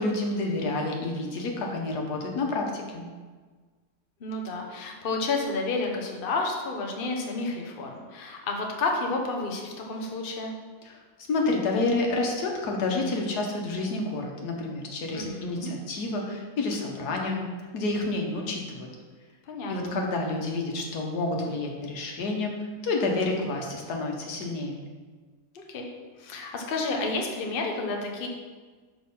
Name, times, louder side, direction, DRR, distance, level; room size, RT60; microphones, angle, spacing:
voice 1, 0.0-3.0 10.8-11.0 11.3-17.4 17.7-18.9 19.7-24.8, left 2 dB, 85° left, 1 dB, 1.7 m, -29 dB
voice 2, 4.2-10.5 15.1-15.7 19.5-20.0 25.5-25.9 26.2-28.3, left 3 dB, 40° left, 1 dB, 1.0 m, -31 dB
6.6 x 5.5 x 5.4 m, 1.4 s
omnidirectional pair, 1.7 m